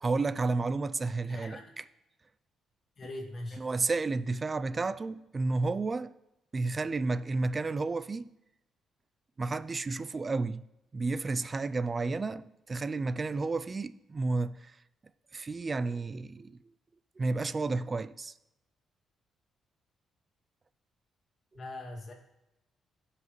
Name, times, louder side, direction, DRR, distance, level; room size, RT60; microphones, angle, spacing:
voice 1, 0.0-1.8 3.6-6.1 6.5-8.3 9.4-10.6 10.9-14.8 15.3-16.5 17.2-18.3, right 3 dB, 30° right, 0.4 m, -31 dB
voice 2, 1.2-1.8 3.0-3.6 21.5-22.1, left 1 dB, 45° left, 2.1 m, -41 dB
15.5 x 5.7 x 3.1 m
cardioid pair, 90°, 0 cm